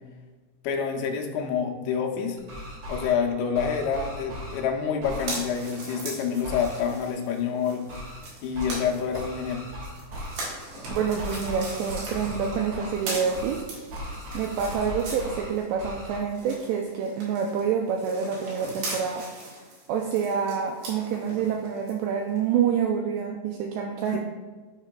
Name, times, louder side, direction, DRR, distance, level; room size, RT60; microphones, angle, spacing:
voice 1, 0.6-2.4 2.9-7.8 8.4-9.6 24.1-24.2, left 7 dB, 85° left, 2 dB, 2.7 m, -27 dB
sound 1, 2.4-3.1 3.5-4.6 5.0-5.3 6.4-6.8 7.9-8.2 8.5-8.8 9.1-10.4 10.8-13.0 13.3-13.6 13.9-15.5 15.8-16.2, left 1 dB, 45° right, 2.3 m, -37 dB
sound 2, 5.1-15.9 16.1-21.9 22.4-22.5, right 2 dB, 65° right, 3.3 m, -40 dB
voice 2, 10.9-13.6 14.3-19.2 19.9-24.2, right 7 dB, 85° right, 2 dB, 2.4 m, -27 dB
11.0 x 4.8 x 2.2 m, 1.3 s
omnidirectional pair, 5.2 m